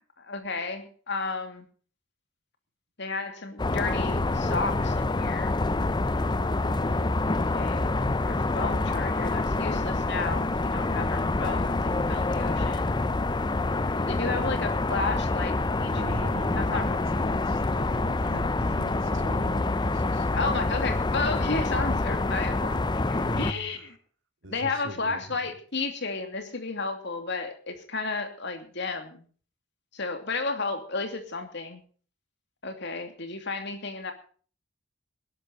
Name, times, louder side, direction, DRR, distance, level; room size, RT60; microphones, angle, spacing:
voice 1, 0.0-1.7 3.0-5.5 7.5-7.9 8.3-12.9 14.1-17.0 20.3-22.8 23.1-24.0 24.5-29.3 29.9-31.8 32.6-34.1, left 3 dB, 60° left, 7 dB, 2.8 m, -33 dB
sound 1, 3.6-23.5, left 2 dB, 20° left, 0.6 m, -27 dB
voice 2, 15.9-20.3 23.2-24.0 24.4-25.5, equal, 70° right, 6 dB, 2.7 m, -40 dB
19.5 x 12.0 x 4.1 m, 0.42 s
head